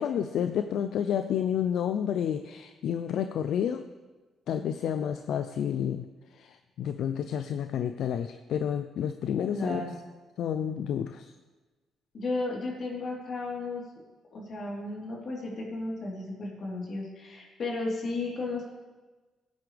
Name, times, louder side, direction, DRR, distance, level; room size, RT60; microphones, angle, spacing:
voice 1, 0.0-3.8 4.5-6.1 6.3-9.8 10.4-11.3, left 9 dB, 75° left, 9 dB, 0.4 m, -30 dB
voice 2, 9.5-10.0 12.1-13.8 14.3-18.7, left 2 dB, 55° left, -3 dB, 3.6 m, -34 dB
17.0 x 9.5 x 3.4 m, 1.3 s
cardioid pair, 90°, 0 cm